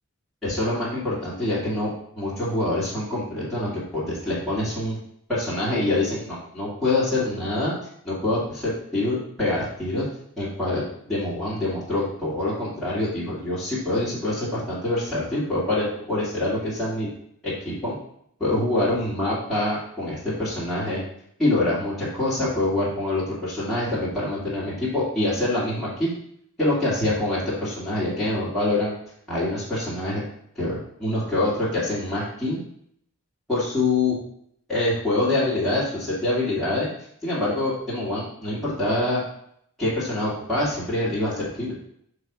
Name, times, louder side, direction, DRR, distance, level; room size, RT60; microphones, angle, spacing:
voice 1, 0.4-1.9 2.2-5.0 5.3-7.8 8.0-10.1 10.4-17.1 17.4-17.9 18.4-21.0 21.4-26.1 26.6-28.9 29.3-30.2 30.6-32.6 33.5-34.2 34.7-36.9 37.2-39.2 39.8-41.7, left 2 dB, ahead, -10 dB, 2.0 m, -25 dB
6.3 x 3.4 x 4.7 m, 0.69 s
head